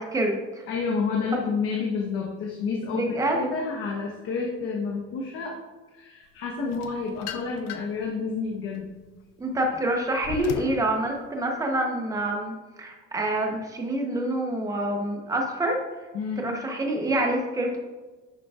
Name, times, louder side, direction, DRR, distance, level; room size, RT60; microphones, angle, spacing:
voice 1, 0.0-0.6 2.9-3.4 9.4-12.5 12.8-15.8 16.4-17.8, right 1 dB, 10° right, 1 dB, 0.9 m, -27 dB
voice 2, 0.7-5.6 5.9-8.9 16.1-16.4, left 4 dB, 45° left, -1 dB, 1.0 m, -29 dB
sound 1, 6.7-8.1 8.6-10.9, left 8 dB, 60° left, 0.6 m, -38 dB
10.5 x 6.8 x 2.4 m, 1.3 s
cardioid pair, 180°, 30 cm